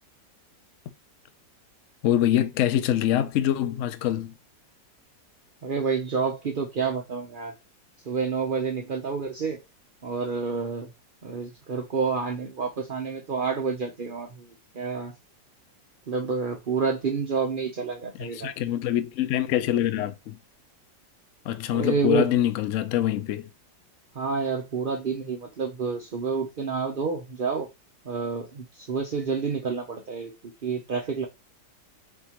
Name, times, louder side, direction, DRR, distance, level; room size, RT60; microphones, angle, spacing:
voice 1, 2.0-4.3 18.2-20.4 21.4-23.5, left 12 dB, 90° left, 0.6 m, -24 dB
voice 2, 5.6-7.5 8.1-9.6 10.0-10.9 11.2-15.1 16.1-18.5 21.7-22.3 24.1-27.7 28.0-30.3 30.6-31.3, right 5 dB, 70° right, 0.5 m, -29 dB
4.5 x 3.6 x 2.9 m
omnidirectional pair, 2.0 m